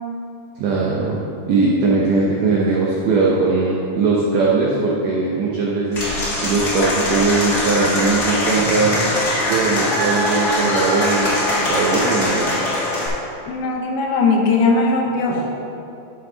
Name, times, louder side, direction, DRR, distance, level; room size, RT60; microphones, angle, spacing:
voice 1, 0.6-1.2 1.5-6.1 6.4-9.0 9.5-12.6 15.3-15.4, right 3 dB, 80° right, -4 dB, 1.9 m, -19 dB
Applause / Crowd, 5.9-13.1, left 1 dB, 60° left, 1.0 m, -21 dB
voice 2, 13.5-15.4, left 3 dB, 80° left, 0 dB, 2.9 m, -19 dB
12.5 x 5.5 x 3.9 m, 2.7 s
omnidirectional pair, 4.9 m